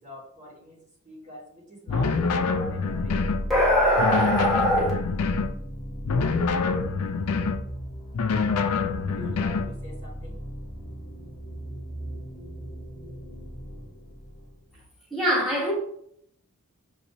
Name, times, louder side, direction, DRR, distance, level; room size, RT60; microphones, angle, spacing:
voice 1, 0.0-3.2 9.0-10.4, equal, 35° right, 1.4 m, -44 dB
sound 1, 1.9-3.5 4.0-5.5 6.0-7.6 8.1-9.7, left 4 dB, 85° left, 0.4 m, -26 dB
sound 2, 2.8-14.7, equal, 40° left, 0.9 m, -37 dB
voice 2, 3.5-4.9 15.1-15.7, equal, ahead, 1.3 m, -22 dB
6.3 x 2.9 x 2.7 m
head